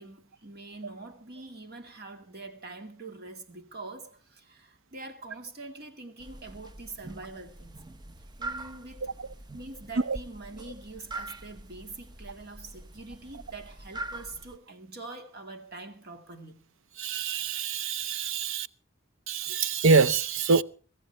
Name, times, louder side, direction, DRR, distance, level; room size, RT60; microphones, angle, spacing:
voice 1, 0.0-7.8 8.4-9.1 9.5-16.7, right 3 dB, 55° right, 2.1 m, -44 dB
sound 1, 6.2-14.6, right 2 dB, 20° right, 0.7 m, -43 dB
voice 2, 17.0-18.7 19.3-20.6, right 4 dB, 70° right, 0.6 m, -25 dB
24.5 x 14.0 x 3.3 m
head